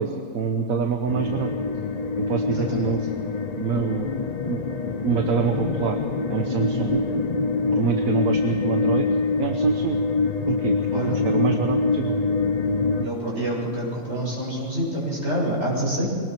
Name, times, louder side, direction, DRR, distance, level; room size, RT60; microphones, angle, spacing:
voice 1, 0.0-1.5 2.2-3.0 3.6-4.1 4.5-4.6 5.0-6.0 6.3-7.0 7.7-9.1 9.4-10.0 10.5-10.8 11.0-12.2, right 6 dB, 80° right, 5 dB, 1.5 m, -26 dB
sound 1, 1.1-13.1, left 3 dB, 40° left, 0.7 m, -25 dB
voice 2, 2.5-2.9 10.9-11.2 13.0-16.1, right 1 dB, 55° right, -4 dB, 7.4 m, -27 dB
23.5 x 19.0 x 6.1 m, 2.3 s
omnidirectional pair, 1.4 m